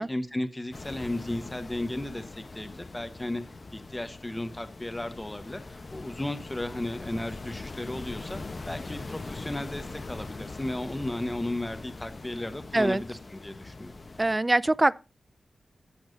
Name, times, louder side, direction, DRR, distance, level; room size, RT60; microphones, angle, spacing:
voice 1, 0.0-3.4 3.7-14.0, left 1 dB, 15° left, 1.1 m, -35 dB
sound 1, 0.7-14.4, left 3 dB, 35° left, 0.9 m, -42 dB
voice 2, 14.2-14.9, right 2 dB, 20° right, 0.4 m, -23 dB
17.0 x 7.2 x 2.7 m
wide cardioid pair, 115°, 0 cm